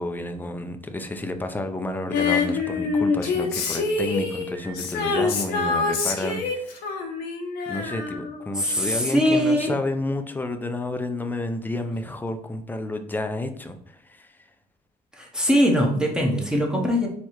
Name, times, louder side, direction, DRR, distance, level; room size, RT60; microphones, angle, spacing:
voice 1, 0.0-6.8 7.7-14.3, left 2 dB, 10° left, 7 dB, 0.5 m, -30 dB
Female singing, 2.1-8.7 9.0-9.1, left 4 dB, 85° left, 0.9 m, -26 dB
voice 2, 8.6-9.7 15.1-17.1, equal, 5° right, 0 dB, 0.9 m, -21 dB
4.6 x 3.3 x 3.0 m, 0.67 s
cardioid pair, 110°, 17 cm